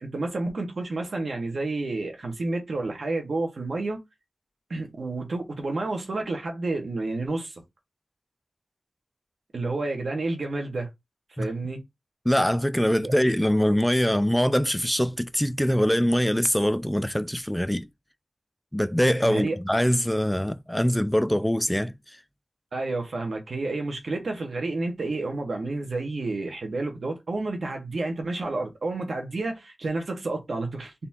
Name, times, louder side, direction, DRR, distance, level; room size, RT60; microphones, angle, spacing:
voice 1, 0.0-4.0 4.7-7.6 9.5-10.9 11.4-11.8 12.9-13.1 19.2-19.6 22.7-30.9, right 2 dB, 80° right, 1.4 m, -30 dB
voice 2, 12.3-17.9 18.7-22.2, equal, 5° left, 0.3 m, -23 dB
4.1 x 3.4 x 2.9 m
wide cardioid pair, 90°, 0 cm